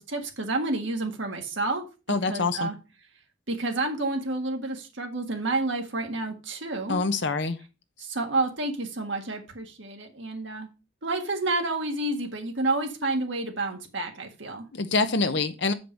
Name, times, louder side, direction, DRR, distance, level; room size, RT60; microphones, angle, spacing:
voice 1, 0.0-1.8 2.3-2.8 3.5-7.0 8.0-10.7 11.0-14.7, right 2 dB, 70° right, 3 dB, 1.7 m, -29 dB
voice 2, 2.1-2.7 6.9-7.6 14.7-15.7, left 3 dB, 60° left, 10 dB, 0.8 m, -25 dB
7.6 x 5.2 x 5.2 m, 0.30 s
head